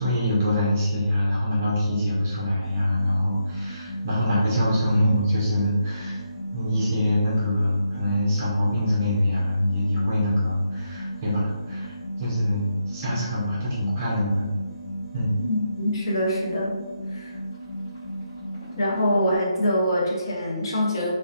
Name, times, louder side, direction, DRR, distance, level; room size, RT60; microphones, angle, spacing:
voice 1, 0.0-6.2 6.5-11.9 12.2-14.5 15.1-15.4, left 1 dB, 20° right, -6 dB, 0.5 m, -24 dB
sound 1, 2.6-19.4, equal, 25° left, 1.2 m, -35 dB
voice 2, 15.4-16.8 17.1-17.3 18.8-21.1, left 1 dB, 45° left, -4 dB, 0.7 m, -24 dB
2.8 x 2.1 x 2.4 m, 1.3 s
hypercardioid pair, 180°, 3 cm